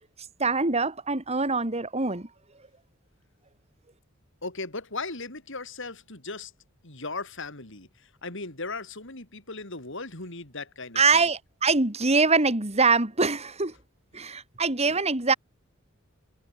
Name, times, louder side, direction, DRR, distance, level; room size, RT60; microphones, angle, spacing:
voice 1, 0.4-2.3 10.9-13.7 14.1-15.3, right 4 dB, 30° right, 2.6 m, -24 dB
voice 2, 4.4-6.5 6.8-11.3, left 3 dB, 60° left, 5.8 m, -37 dB
head